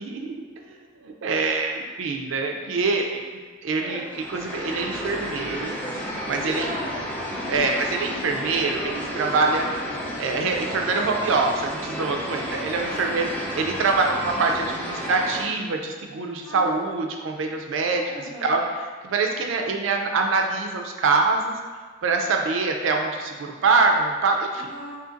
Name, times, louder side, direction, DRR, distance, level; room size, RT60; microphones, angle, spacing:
voice 1, 0.0-3.2 3.6-6.7 7.5-9.7 10.2-13.3 13.5-18.0 18.4-18.6 19.0-21.5 22.0-24.7, right 4 dB, 80° right, 2 dB, 0.4 m, -24 dB
voice 2, 3.7-4.0 6.5-7.3 12.9-13.1 16.4-16.8 18.0-18.6 24.5-25.0, equal, 35° left, -9 dB, 0.7 m, -38 dB
sound 1, 4.0-15.5, equal, 10° left, 0.4 m, -32 dB
2.7 x 2.5 x 3.8 m, 1.5 s
head